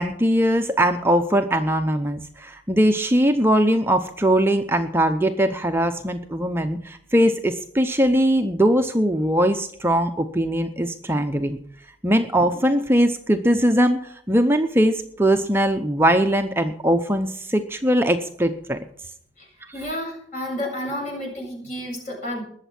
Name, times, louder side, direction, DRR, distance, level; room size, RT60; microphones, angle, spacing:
voice 1, 0.0-11.6 12.0-18.8, right 1 dB, 15° right, 6 dB, 0.7 m, -21 dB
voice 2, 19.4-22.4, left 1 dB, 45° left, -1 dB, 7.8 m, -31 dB
20.5 x 7.3 x 6.0 m, 0.63 s
head